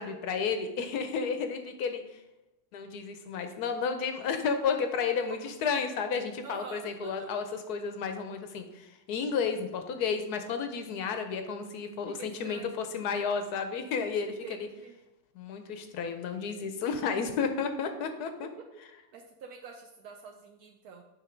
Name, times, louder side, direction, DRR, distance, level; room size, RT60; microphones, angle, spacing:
voice 1, 0.0-2.2 2.7-14.7 15.4-18.5, left 5 dB, 70° left, 7 dB, 0.9 m, -32 dB
voice 2, 6.4-7.3 12.0-12.7 14.4-15.0 18.9-21.0, right 5 dB, 80° right, 2 dB, 0.8 m, -46 dB
8.8 x 3.3 x 5.0 m, 0.96 s
omnidirectional pair, 2.2 m